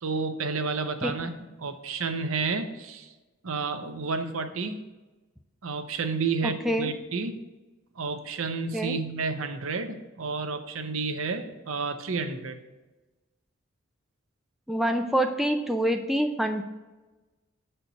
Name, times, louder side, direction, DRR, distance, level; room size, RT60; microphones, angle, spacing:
voice 1, 0.0-1.3 1.6-3.1 3.4-4.8 5.6-7.4 8.0-12.6, right 4 dB, 85° right, 8 dB, 0.7 m, -31 dB
voice 2, 6.4-6.9 8.7-9.0 14.7-16.6, equal, ahead, 4 dB, 0.4 m, -26 dB
6.8 x 4.4 x 5.1 m, 1.2 s
head